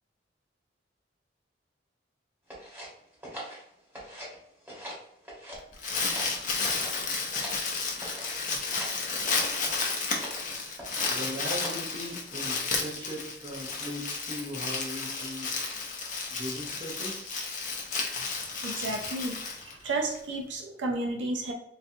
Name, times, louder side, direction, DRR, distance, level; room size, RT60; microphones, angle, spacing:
sound 1, 2.5-4.4 4.6-5.6 5.9-7.7 8.0-8.4 8.7-9.0 9.4-9.7 10.1-10.4 10.8-11.2 11.5-11.9, equal, 10° right, 1.1 m, -42 dB
Crumpling crinkling, 5.5-20.2, left 4 dB, 45° left, 0.6 m, -32 dB
voice 1, 11.1-15.6 16.3-17.4, equal, 30° right, -2 dB, 0.7 m, -39 dB
voice 2, 18.6-21.5, right 2 dB, 75° right, 2 dB, 0.5 m, -32 dB
3.8 x 2.3 x 2.7 m, 0.77 s
head